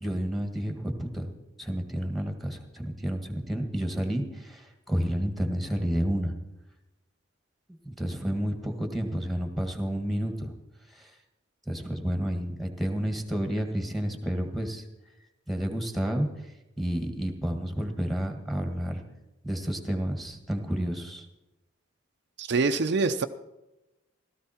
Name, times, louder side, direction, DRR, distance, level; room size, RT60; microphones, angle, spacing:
voice 1, 0.0-1.3 1.6-6.3 8.0-10.5 11.7-14.8 15.5-16.3 16.8-19.0 19.4-21.3, equal, ahead, 4 dB, 1.7 m, -30 dB
voice 2, 22.4-23.3, right 4 dB, 60° right, 8 dB, 0.6 m, -25 dB
16.5 x 13.5 x 4.4 m, 0.96 s
head